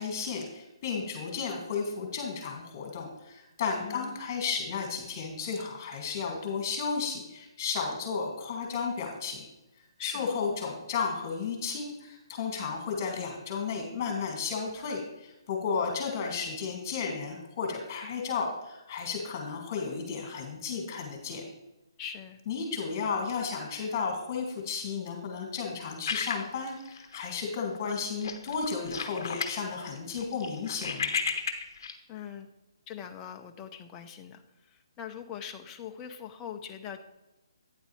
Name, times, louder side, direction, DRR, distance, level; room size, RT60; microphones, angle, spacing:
voice 1, 0.0-9.4 10.0-21.4 22.5-31.1, left 5 dB, 35° left, 2 dB, 2.3 m, -33 dB
voice 2, 3.8-4.2 10.0-10.3 22.0-22.4 31.8-32.5 32.9-37.0, left 8 dB, 20° left, 5 dB, 0.5 m, -42 dB
sound 1, 26.1-27.4 27.7-27.9 28.2-29.6 30.0-32.0, left 5 dB, 55° left, 0.9 m, -33 dB
9.2 x 8.1 x 3.2 m, 0.97 s
hypercardioid pair, 145°, 3 cm